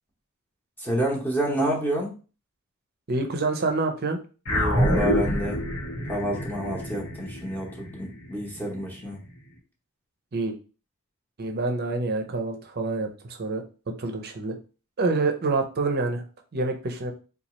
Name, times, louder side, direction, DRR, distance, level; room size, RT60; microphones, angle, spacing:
voice 1, 0.8-2.1 4.5-5.6 6.1-9.2, right 1 dB, 10° left, -3 dB, 0.9 m, -28 dB
voice 2, 3.1-4.2 10.3-10.6 11.4-13.6 14.0-14.5 15.0-16.2 16.5-17.1, right 3 dB, 45° right, 5 dB, 0.6 m, -27 dB
sound 1, 4.5-9.1, equal, 80° left, 1.2 m, -27 dB
4.0 x 2.4 x 3.0 m, 0.35 s
head